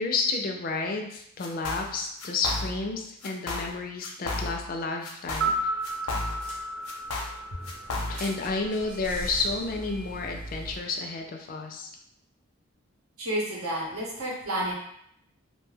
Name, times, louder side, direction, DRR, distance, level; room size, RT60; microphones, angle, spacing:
voice 1, 0.0-5.5 8.1-11.9, left 3 dB, 40° left, 2 dB, 0.3 m, -31 dB
sound 1, 1.4-1.9 2.2-2.9 3.2-3.7 4.0-4.7 5.0-6.6 6.8-8.4, left 2 dB, 85° left, 0.6 m, -33 dB
sound 2, 5.2-9.4 9.7-9.8, right 2 dB, 65° right, 0.3 m, -33 dB
sound 3, 5.8-5.9 6.3-7.1 7.6-10.8, right 1 dB, 35° right, 0.7 m, -41 dB
voice 2, 13.2-14.7, right 1 dB, 90° right, -3 dB, 0.9 m, -30 dB
2.6 x 2.2 x 3.2 m, 0.72 s
head